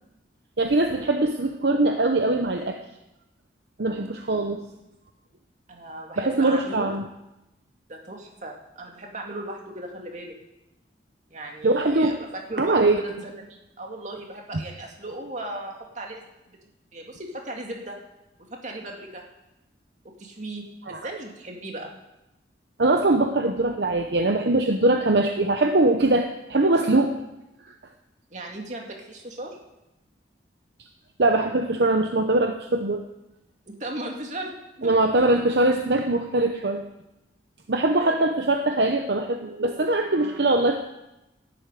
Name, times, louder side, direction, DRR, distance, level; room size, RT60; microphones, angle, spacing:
voice 1, 0.6-2.8 3.8-4.6 6.2-7.0 11.6-12.2 12.6-13.0 20.9-21.0 22.8-27.2 31.2-33.1 34.8-36.8 37.7-40.8, right 2 dB, 65° right, 4 dB, 0.9 m, -22 dB
voice 2, 5.7-7.0 7.9-10.3 11.3-16.6 16.9-18.0 18.5-19.2 20.2-21.9 28.3-29.6 33.7-35.4 37.9-38.6, right 1 dB, 40° right, 1 dB, 2.4 m, -37 dB
11.5 x 8.1 x 9.2 m, 0.93 s
head